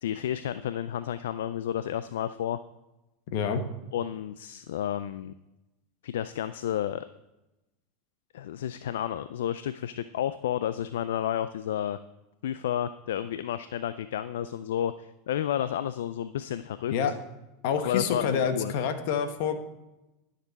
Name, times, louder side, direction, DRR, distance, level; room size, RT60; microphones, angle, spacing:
voice 1, 0.0-2.6 3.9-5.3 6.0-7.1 8.3-12.0 12.4-16.9 17.8-18.7, left 10 dB, 80° left, 13 dB, 0.3 m, -31 dB
voice 2, 3.3-3.6 16.9-17.1 17.6-19.6, left 7 dB, 65° left, 8 dB, 1.2 m, -27 dB
12.5 x 6.7 x 4.1 m, 0.98 s
hypercardioid pair, 100°, 0 cm